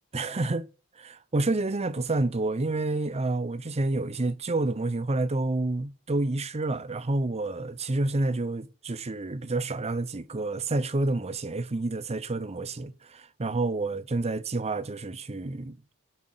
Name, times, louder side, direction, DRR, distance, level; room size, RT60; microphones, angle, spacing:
voice 1, 0.1-0.7 1.0-15.7, right 2 dB, 30° right, 0.7 m, -29 dB
7.5 x 5.8 x 6.2 m
head